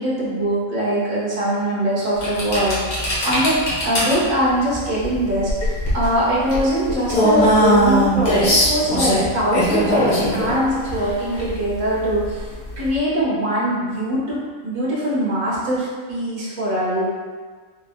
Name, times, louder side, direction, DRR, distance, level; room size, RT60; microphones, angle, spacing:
voice 1, 0.0-3.6 3.8-12.5 12.8-14.4 14.6-17.1, equal, 65° right, -8 dB, 1.8 m, -22 dB
sound 1, 2.2-13.0, equal, 80° left, 1.7 m, -21 dB
5.1 x 3.4 x 2.3 m, 1.5 s
omnidirectional pair, 1.5 m